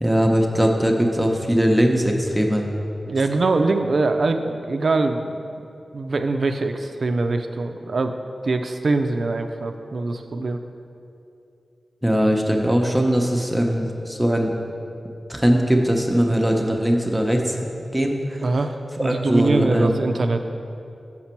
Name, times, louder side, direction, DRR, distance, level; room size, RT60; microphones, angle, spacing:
voice 1, 0.0-2.6 12.0-14.5 15.3-17.6 17.9-18.4 19.0-20.1, equal, 10° right, 1 dB, 0.7 m, -20 dB
voice 2, 3.1-5.4 5.9-8.1 8.4-10.6 18.4-20.4, right 3 dB, 70° right, 6 dB, 0.3 m, -23 dB
5.9 x 5.8 x 4.4 m, 2.7 s
cardioid pair, 40°, 0 cm